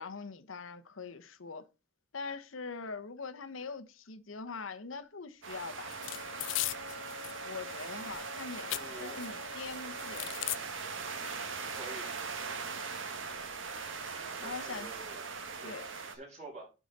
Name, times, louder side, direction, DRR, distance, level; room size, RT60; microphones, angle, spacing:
voice 1, 0.0-1.6 2.1-6.0 7.4-10.5 14.4-14.9 15.6-15.9, left 4 dB, 85° left, 0.9 m, -43 dB
sound 1, 5.4-16.1, right 5 dB, 75° right, 1.5 m, -41 dB
Wind instrument woodwind instrument, 5.8-10.6, left 3 dB, 55° right, 6.2 m, -49 dB
sound 2, 5.9-7.4 7.7-9.3 9.6-10.6 11.2-11.3 11.6-12.2, left 17 dB, 70° left, 0.4 m, -38 dB
voice 2, 8.7-9.1 11.7-12.1 14.4-15.2 15.6-15.8 16.1-16.7, right 2 dB, 35° right, 5.7 m, -47 dB
11.5 x 4.9 x 4.1 m
head